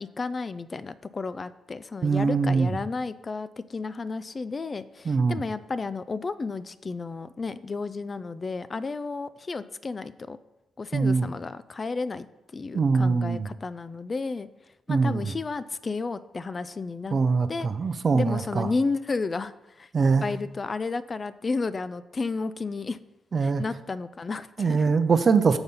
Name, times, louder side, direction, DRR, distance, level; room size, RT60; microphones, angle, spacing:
voice 1, 0.0-10.4 10.8-12.3 12.5-14.5 14.9-17.2 17.5-17.7 18.1-19.9 20.2-23.0 23.4-24.9, left 4 dB, 40° left, 15 dB, 0.3 m, -32 dB
voice 2, 2.0-2.7 5.1-5.4 10.9-11.3 12.7-13.5 14.9-15.3 17.1-18.7 19.9-20.3 23.3-23.6 24.6-25.6, right 4 dB, 50° right, 10 dB, 0.6 m, -23 dB
6.9 x 4.0 x 5.3 m, 0.96 s
supercardioid pair, 50°, 0 cm